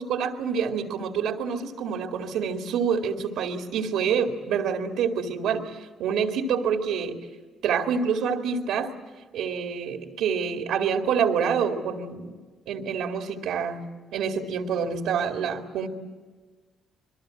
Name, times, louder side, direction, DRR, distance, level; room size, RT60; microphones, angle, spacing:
voice 1, 0.0-7.2 7.6-8.9 9.3-12.4 12.7-15.9, right 6 dB, 85° right, 4 dB, 2.1 m, -27 dB
26.5 x 22.5 x 7.7 m, 1.4 s
cardioid pair, 90°, 0 cm